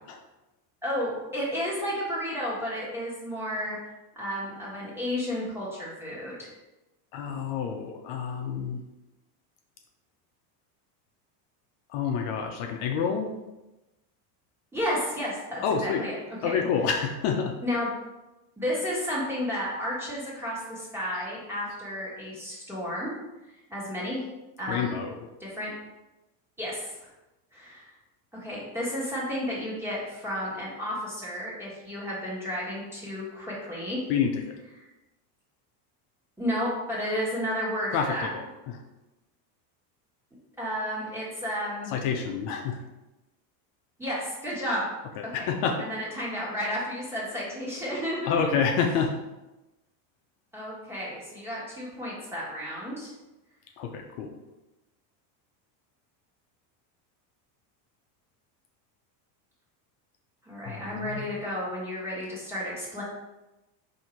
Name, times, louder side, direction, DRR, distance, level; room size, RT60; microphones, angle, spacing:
voice 1, 0.8-3.8 4.1-6.5 14.7-16.2 16.4-16.5 17.6-17.9 18.6-23.1 23.7-24.2 24.6-24.9 25.4-25.7 26.6-27.1 27.5-27.9 28.3-34.0 36.4-38.3 40.6-41.9 44.0-44.9 45.2-45.5 45.8-48.4 50.5-53.1 60.4-63.0, equal, 5° right, -7 dB, 1.5 m, -32 dB
voice 2, 7.1-8.8 11.9-13.3 15.6-16.0 16.4-17.5 24.7-25.1 34.1-34.5 37.9-38.8 41.9-42.8 45.2-45.8 48.3-49.1 53.8-54.3 60.7-61.4, left 6 dB, 65° left, 2 dB, 0.7 m, -28 dB
4.2 x 2.8 x 4.4 m, 1.0 s
cardioid pair, 140°, 49 cm